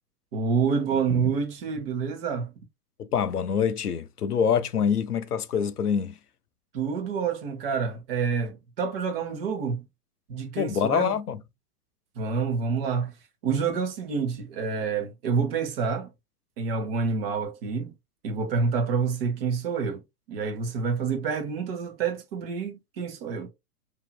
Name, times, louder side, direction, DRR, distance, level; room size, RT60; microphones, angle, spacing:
voice 1, 0.3-2.5 6.7-9.8 10.3-11.1 12.2-13.1 13.4-16.1 16.6-17.9 18.2-20.0 20.3-23.5, right 5 dB, 40° right, 0.9 m, -28 dB
voice 2, 3.0-6.2 10.6-11.4, left 7 dB, 80° left, 0.5 m, -25 dB
3.0 x 2.7 x 2.2 m
figure-of-eight pair, 110°, 45 cm